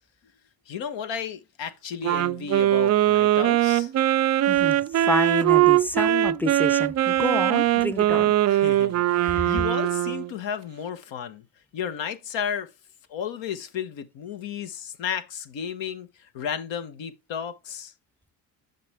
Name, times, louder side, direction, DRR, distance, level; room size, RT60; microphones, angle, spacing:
voice 1, 0.7-3.9 8.5-11.4 11.7-12.7 13.1-17.9, left 8 dB, 65° left, 1.2 m, -33 dB
Wind instrument woodwind instrument, 2.0-10.3, right 13 dB, 35° right, 0.4 m, -21 dB
voice 2, 4.5-8.3 9.2-9.5, left 1 dB, 5° left, 0.6 m, -29 dB
6.7 x 5.6 x 3.5 m
supercardioid pair, 70°, 48 cm